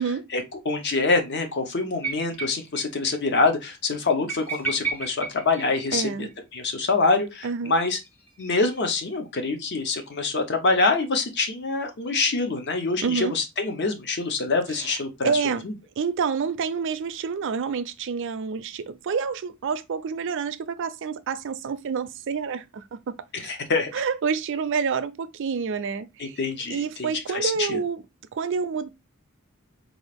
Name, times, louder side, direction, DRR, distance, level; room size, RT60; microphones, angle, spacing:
voice 1, 0.3-8.0 8.4-15.3 15.6-15.7 23.3-23.9 26.2-27.8, left 3 dB, 55° left, 0.7 m, -25 dB
sound 1, 2.0-2.9 3.1-3.2 3.5-3.6 4.3-6.3 7.8-9.1, right 5 dB, 10° left, 0.7 m, -34 dB
voice 2, 5.9-6.3 7.4-7.7 13.0-13.3 14.7-14.9 15.2-15.6 16.0-22.8 23.4-23.5 23.9-26.4 26.7-28.0 28.3-28.9, right 6 dB, 60° right, 0.4 m, -28 dB
3.8 x 2.4 x 3.3 m
head